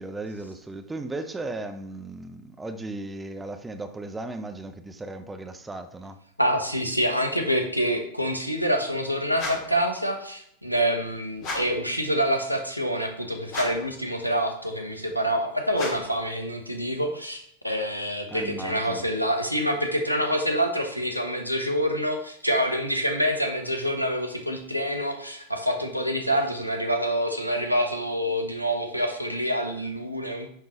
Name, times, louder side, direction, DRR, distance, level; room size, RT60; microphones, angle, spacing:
voice 1, 0.0-6.2 18.3-19.1, right 2 dB, 10° right, 7 dB, 0.6 m, -36 dB
voice 2, 6.4-30.5, equal, 90° left, 4 dB, 0.9 m, -26 dB
sound 1, 9.3-9.8 11.4-11.9 13.5-14.0 15.7-16.2, left 2 dB, 45° left, 1.9 m, -34 dB
10.5 x 3.7 x 3.0 m, 0.67 s
figure-of-eight pair, 90°, 0 cm